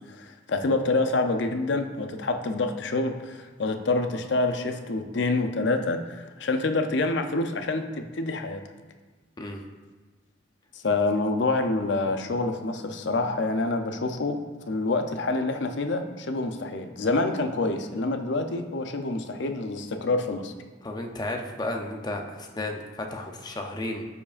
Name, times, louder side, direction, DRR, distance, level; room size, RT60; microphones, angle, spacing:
voice 1, 0.0-8.6 10.7-14.4 14.7-20.5, left 2 dB, 60° left, 6 dB, 0.6 m, -27 dB
voice 2, 20.8-24.0, left 1 dB, 20° left, 2 dB, 0.6 m, -33 dB
12.0 x 4.8 x 2.5 m, 1.3 s
head